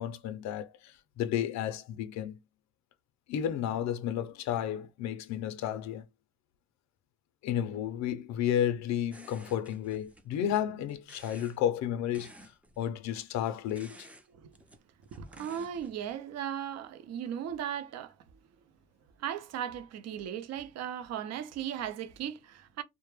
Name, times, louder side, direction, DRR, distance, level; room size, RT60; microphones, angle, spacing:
voice 1, 0.0-2.4 3.3-6.0 7.4-12.3 12.8-14.1, left 10 dB, 70° left, 0.5 m, -32 dB
sound 1, 9.1-10.6 10.9-11.6 12.1-13.2 13.7-14.3 14.5-16.2, right 1 dB, 5° right, 0.3 m, -54 dB
voice 2, 15.1-18.1 19.2-22.8, right 9 dB, 60° right, 0.5 m, -37 dB
2.1 x 2.1 x 3.0 m
cardioid pair, 105°, 29 cm